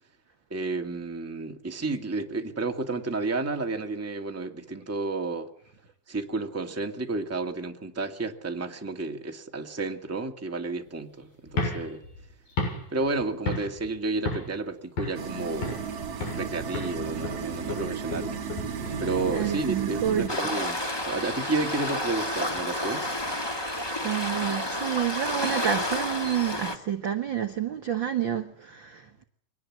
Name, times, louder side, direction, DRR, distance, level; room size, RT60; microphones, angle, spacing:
voice 1, 0.5-5.5 6.1-12.0 12.9-15.8 16.3-18.4 19.0-23.1, right 3 dB, 5° right, 1.2 m, -31 dB
sound 1, 11.5-13.9 14.3-14.6 15.0-15.9 16.2-16.5 16.7-19.9, left 2 dB, 85° left, 8.8 m, -33 dB
sound 2, 15.1-20.3, right 6 dB, 50° right, 2.6 m, -34 dB
voice 2, 19.3-20.3 24.0-29.2, right 10 dB, 70° right, 1.1 m, -29 dB
Waves surf, 20.3-26.7, left 1 dB, 15° left, 0.9 m, -30 dB
24.0 x 19.0 x 7.6 m
omnidirectional pair, 4.1 m